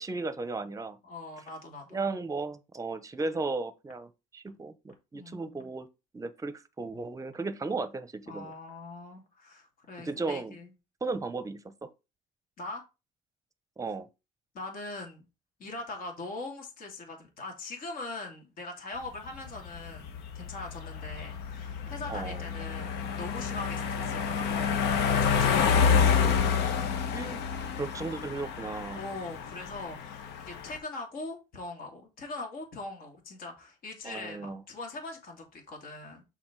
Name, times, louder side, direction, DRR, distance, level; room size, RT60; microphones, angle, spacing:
voice 1, 0.0-1.0 1.9-5.9 6.1-8.5 10.0-10.6 11.0-11.9 13.8-14.1 22.1-22.4 25.6-25.8 27.1-29.0 34.0-34.6, right 3 dB, 20° right, 0.8 m, -35 dB
voice 2, 1.0-2.0 5.1-5.7 8.3-10.7 12.6-12.8 14.5-15.2 15.6-26.2 28.9-36.2, left 2 dB, 60° left, 2.7 m, -41 dB
sound 1, 19.1-30.8, left 6 dB, 85° left, 1.2 m, -29 dB
6.4 x 3.9 x 4.7 m
cardioid pair, 110°, 17 cm